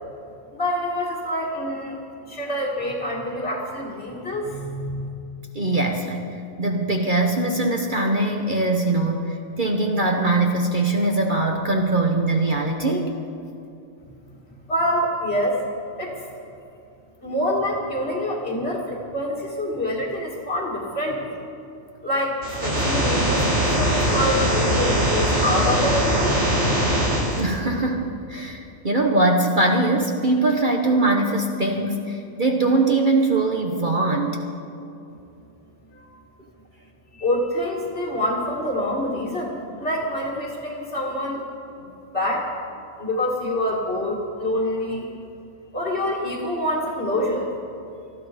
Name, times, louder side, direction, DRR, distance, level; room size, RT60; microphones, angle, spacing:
voice 1, 0.5-2.0 2.3-5.1 14.7-15.6 16.0-16.2 17.2-21.4 22.0-26.4 35.9-36.1 37.1-41.4 41.8-41.9 42.1-42.5 43.0-45.1 45.7-47.5, left 1 dB, 45° left, -4 dB, 2.3 m, -26 dB
voice 2, 5.5-6.2 6.6-13.2 27.4-34.4, right 2 dB, 40° right, 2 dB, 1.1 m, -22 dB
sound 1, 22.4-27.4, equal, 60° right, 4.8 m, -21 dB
19.5 x 13.5 x 5.0 m, 2.7 s
omnidirectional pair, 1.5 m